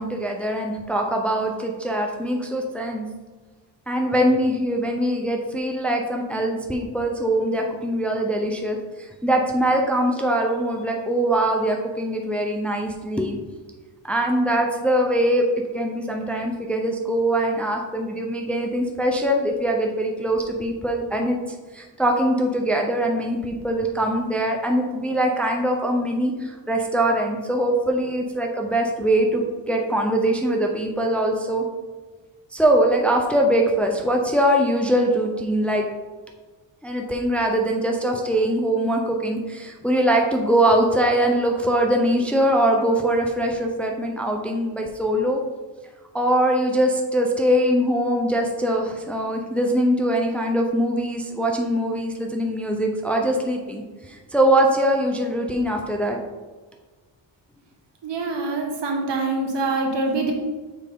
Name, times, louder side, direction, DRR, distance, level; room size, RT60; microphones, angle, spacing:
voice 1, 0.0-3.1 3.9-13.4 14.0-15.5 15.7-21.4 21.7-31.6 32.5-35.8 36.8-45.4 46.1-56.2, right 1 dB, 5° left, 1 dB, 0.6 m, -22 dB
voice 2, 58.0-60.3, right 3 dB, 65° right, 1 dB, 1.5 m, -25 dB
6.9 x 4.7 x 3.6 m, 1.3 s
cardioid pair, 110°, 45 cm